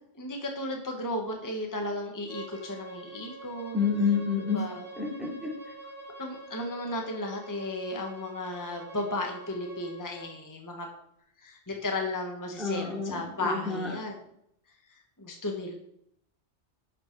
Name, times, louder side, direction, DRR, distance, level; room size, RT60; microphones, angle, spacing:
voice 1, 0.1-3.8 4.5-4.8 6.2-10.9 11.4-14.1 15.2-15.7, left 1 dB, 15° left, 2 dB, 1.2 m, -34 dB
Bowed string instrument, 2.3-10.3, right 2 dB, 40° right, 3.3 m, -46 dB
voice 2, 3.7-4.6 5.0-5.5 12.6-13.9, left 5 dB, ahead, -3 dB, 2.6 m, -29 dB
11.0 x 5.8 x 4.6 m, 0.72 s
omnidirectional pair, 1.2 m